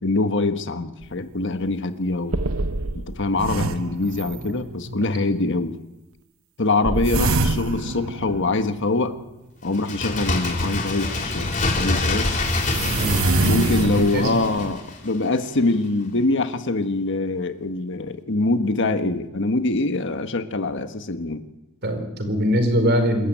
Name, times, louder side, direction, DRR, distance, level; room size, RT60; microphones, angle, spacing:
voice 1, 0.0-2.5 2.9-5.8 6.6-9.2 9.6-12.3 13.4-21.4, left 2 dB, 60° left, 9 dB, 1.4 m, -24 dB
sound 1, 1.0-1.1 1.7-1.8 2.3-4.8 6.8-9.2 11.4-11.5 12.5-14.7, right 3 dB, 85° right, 1.1 m, -26 dB
voice 2, 4.9-5.3 12.9-14.4 21.8-23.3, equal, 55° right, 6 dB, 4.9 m, -23 dB
Bird, 9.7-15.3 15.6-15.7, left 2 dB, 40° left, 3.4 m, -26 dB
28.0 x 13.5 x 9.3 m, 0.97 s
head